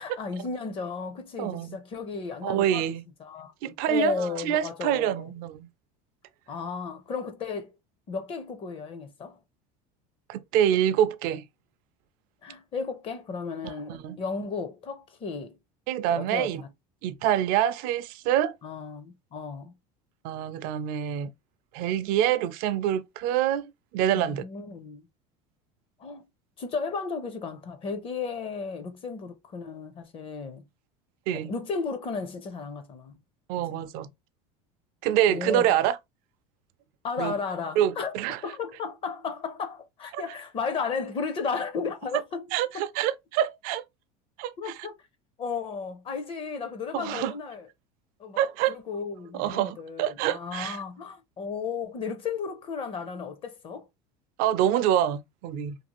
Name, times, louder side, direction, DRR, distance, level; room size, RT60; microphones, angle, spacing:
voice 1, 0.0-2.9 3.2-5.3 6.5-7.7 8.1-9.4 12.4-15.6 16.1-16.7 18.6-19.7 24.1-25.1 26.0-26.2 26.6-30.6 31.3-33.1 33.7-33.8 35.3-35.7 37.0-38.1 38.4-42.5 42.7-42.8 44.6-44.9 45.4-47.7 48.2-48.4 48.7-53.9, left 5 dB, 30° left, 0.5 m, -34 dB
voice 2, 1.4-1.8 2.4-3.0 3.6-5.7 10.3-11.4 13.6-14.2 15.9-16.6 17.0-18.5 20.2-21.3 21.7-24.4 31.3-31.5 33.5-34.1 35.0-36.0 37.2-37.4 37.8-38.4 40.1-40.2 42.5-43.8 44.4-44.7 46.9-47.3 48.4-48.8 49.3-50.8 54.4-55.8, right 11 dB, 55° right, 0.4 m, -26 dB
2.6 x 2.4 x 2.9 m
supercardioid pair, 135°, 17 cm